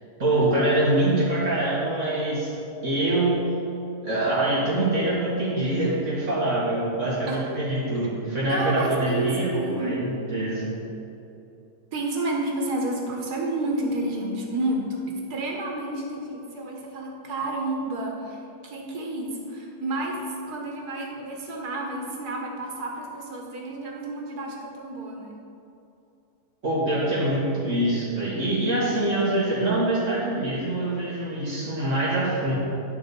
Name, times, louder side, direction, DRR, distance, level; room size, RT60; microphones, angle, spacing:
voice 1, 0.2-2.5 2.8-3.5 4.0-10.7 26.6-32.6, right 1 dB, 50° right, -8 dB, 2.0 m, -24 dB
voice 2, 8.5-10.0 11.9-25.4, right 2 dB, 90° right, 0 dB, 1.8 m, -30 dB
10.5 x 4.2 x 6.7 m, 2.7 s
omnidirectional pair, 1.6 m